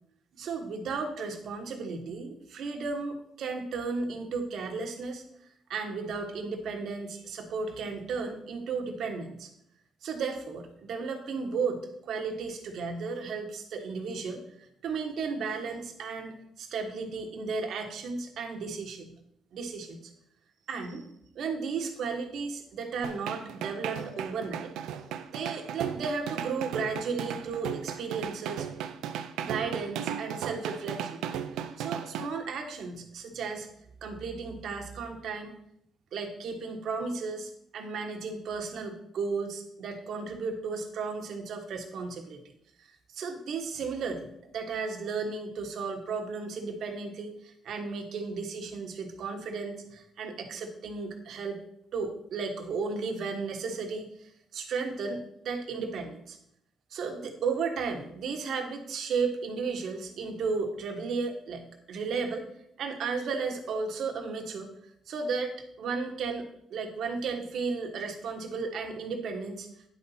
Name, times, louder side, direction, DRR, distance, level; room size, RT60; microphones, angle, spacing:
voice 1, 0.4-5.2 5.7-9.5 10.0-14.4 14.8-19.1 19.5-20.0 20.7-21.1 21.3-24.7 25.3-28.7 29.4-31.2 31.8-33.7 34.0-35.6 36.1-42.4 43.1-51.6 51.9-54.1 54.5-56.4 56.9-62.5 62.8-64.7 65.1-69.7, right 4 dB, 70° right, 4 dB, 1.4 m, -34 dB
sound 1, 23.0-32.3, right 9 dB, 90° right, 0.5 m, -35 dB
10.0 x 4.1 x 5.7 m, 0.75 s
cardioid pair, 90°, 0 cm